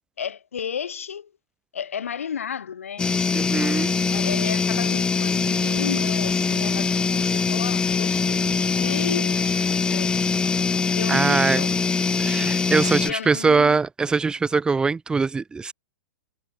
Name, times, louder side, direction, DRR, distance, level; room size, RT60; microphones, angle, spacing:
voice 1, 0.2-1.3 1.7-3.8 4.1-10.2 10.9-11.8 13.1-13.8, left 7 dB, 65° left, 5.2 m, -33 dB
sound 1, 3.0-13.1, left 5 dB, 10° left, 0.8 m, -23 dB
voice 2, 3.3-3.9 11.1-11.6 12.2-15.7, right 4 dB, 10° right, 1.6 m, -22 dB
figure-of-eight pair, 105°, 8 cm